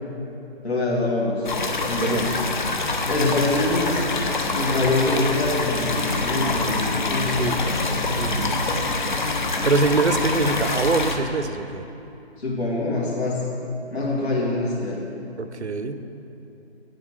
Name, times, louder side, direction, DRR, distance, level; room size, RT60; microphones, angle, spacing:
voice 1, 0.6-1.5 1.8-2.3 3.1-4.0 4.5-7.5 12.4-13.4 13.9-15.0, left 2 dB, 70° left, -5 dB, 2.2 m, -24 dB
sound 1, 1.4-11.2, left 3 dB, 45° left, 1.0 m, -25 dB
voice 2, 7.3-7.6 8.2-8.6 9.6-11.8 15.4-16.0, right 3 dB, 85° right, 10 dB, 0.8 m, -24 dB
9.4 x 7.7 x 6.4 m, 3.0 s
figure-of-eight pair, 155°, 33 cm